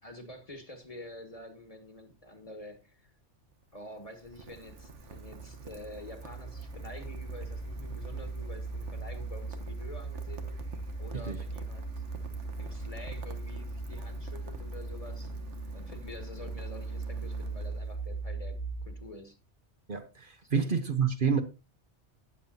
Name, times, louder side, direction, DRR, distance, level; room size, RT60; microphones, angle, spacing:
voice 1, 0.0-3.1 3.7-10.6 11.0-11.9 12.6-15.3 15.7-19.4 20.4-20.7, left 1 dB, 30° left, 1.9 m, -47 dB
Rain, 3.4-18.2, right 4 dB, 85° right, 1.5 m, -50 dB
sound 1, 4.3-19.1, right 3 dB, 80° left, 3.0 m, -39 dB
voice 2, 19.9-21.4, right 6 dB, 50° right, 1.1 m, -28 dB
18.0 x 7.4 x 2.8 m
omnidirectional pair, 1.2 m